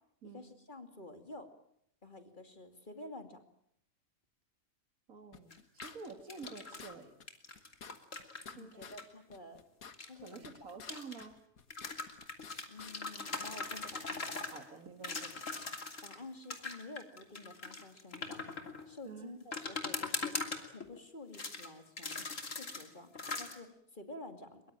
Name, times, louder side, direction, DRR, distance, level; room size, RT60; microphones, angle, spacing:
voice 1, 0.3-1.5 2.0-3.4 8.5-9.7 10.0-10.7 12.7-14.3 16.0-18.4 18.9-22.2 22.5-24.6, left 2 dB, 35° left, 7 dB, 2.8 m, -50 dB
voice 2, 5.1-7.1 8.6-9.0 10.2-11.4 14.5-15.4 19.0-19.3, right 4 dB, 75° right, 8 dB, 2.7 m, -49 dB
sound 1, 5.3-6.5 6.8-6.9 7.2-7.3 7.6-9.0 9.3-10.9 11.2-12.5 12.8-12.9, left 6 dB, 80° left, 2.0 m, -52 dB
sound 2, 5.5-6.9 7.3-9.0 9.9-11.2 11.7-14.6 15.0-16.2 16.5-18.9 19.5-21.0 21.3-21.7 22.0-22.9 23.1-23.6, left 3 dB, 65° left, 3.3 m, -40 dB
24.0 x 23.0 x 9.0 m, 0.73 s
omnidirectional pair, 1.5 m